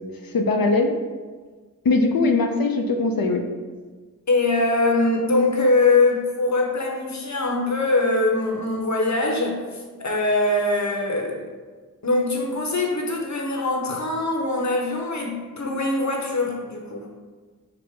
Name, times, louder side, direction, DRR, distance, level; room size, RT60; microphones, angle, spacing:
voice 1, 0.3-0.9 1.8-3.4, left 3 dB, 85° left, 5 dB, 0.5 m, -20 dB
voice 2, 4.3-11.5 12.0-17.1, left 2 dB, 55° left, 0 dB, 0.8 m, -22 dB
4.9 x 2.0 x 4.4 m, 1.4 s
wide cardioid pair, 45°, 34 cm